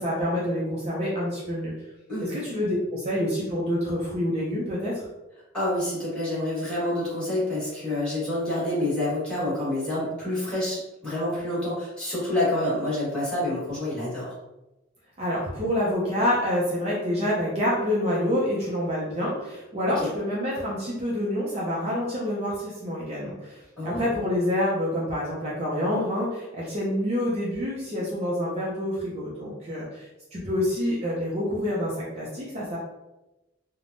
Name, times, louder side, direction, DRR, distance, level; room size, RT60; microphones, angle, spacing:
voice 1, 0.0-1.7 2.2-4.9 15.2-30.1 30.3-32.8, left 1 dB, 30° right, -6 dB, 0.5 m, -27 dB
voice 2, 5.5-14.4 19.8-20.1 23.8-24.1, left 1 dB, 5° left, -9 dB, 1.4 m, -28 dB
3.3 x 2.1 x 2.5 m, 1.0 s
head